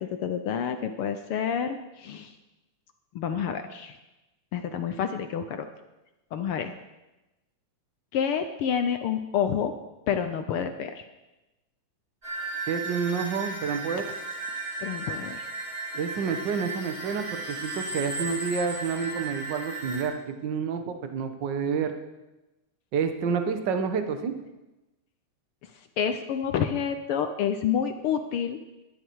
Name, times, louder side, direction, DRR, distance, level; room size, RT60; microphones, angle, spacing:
voice 1, 0.0-2.3 3.1-4.0 4.5-5.7 6.3-6.7 8.1-9.7 10.1-11.1 14.8-15.5 26.0-28.6, left 8 dB, 80° left, 8 dB, 1.2 m, -28 dB
sound 1, 12.2-20.0, right 3 dB, 20° right, 4.6 m, -35 dB
voice 2, 12.7-14.1 15.9-21.9 22.9-24.3, right 6 dB, 50° right, 7 dB, 1.4 m, -29 dB
20.5 x 11.5 x 4.7 m, 1.0 s
omnidirectional pair, 3.4 m